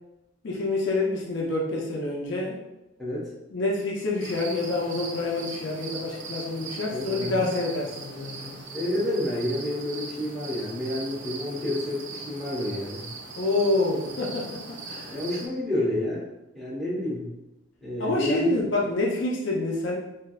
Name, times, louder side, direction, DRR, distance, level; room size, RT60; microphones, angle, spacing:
voice 1, 0.4-2.6 3.5-8.7 13.4-15.2 18.0-19.9, left 2 dB, 60° left, -2 dB, 0.5 m, -27 dB
sound 1, 4.2-15.5, right 4 dB, 70° right, 0.5 m, -40 dB
voice 2, 6.9-7.5 8.7-13.1 15.1-16.2 16.5-17.3 17.8-18.5, left 1 dB, ahead, -9 dB, 0.9 m, -29 dB
3.2 x 2.6 x 2.3 m, 0.97 s
head